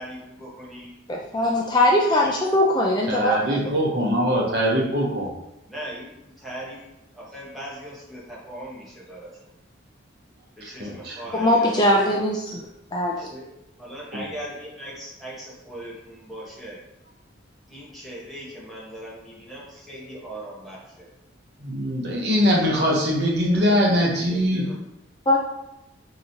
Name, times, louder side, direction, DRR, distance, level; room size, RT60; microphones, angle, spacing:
voice 1, 0.0-1.0 2.2-2.4 3.0-3.6 5.6-6.8 7.1-9.4 10.6-11.8 12.1-12.2 13.2-13.4 13.8-16.8 17.7-21.1 24.2-24.8, right 1 dB, ahead, -7 dB, 0.9 m, -39 dB
voice 2, 1.1-3.8 11.3-12.7 12.9-13.3 25.3-25.4, left 1 dB, 20° left, -1 dB, 0.3 m, -21 dB
voice 3, 3.1-5.3 10.6-11.2 21.6-24.6, equal, 55° right, -2 dB, 0.9 m, -22 dB
4.7 x 2.8 x 2.7 m, 0.89 s
head